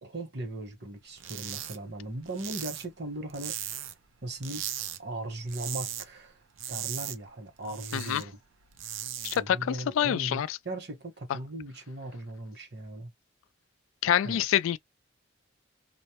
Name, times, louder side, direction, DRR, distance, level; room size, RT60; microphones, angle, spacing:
voice 1, 0.0-3.9 4.2-6.4 6.7-8.4 9.3-13.1 14.2-14.4, right 1 dB, 55° right, 1.2 m, -38 dB
sound 1, 1.2-1.8 2.0-4.1 4.4-5.0 5.3-6.1 6.4-8.2 8.6-9.4, right 11 dB, 85° right, 0.5 m, -37 dB
voice 2, 9.2-10.6 14.0-14.8, left 10 dB, 90° left, 0.3 m, -26 dB
2.4 x 2.1 x 2.9 m
head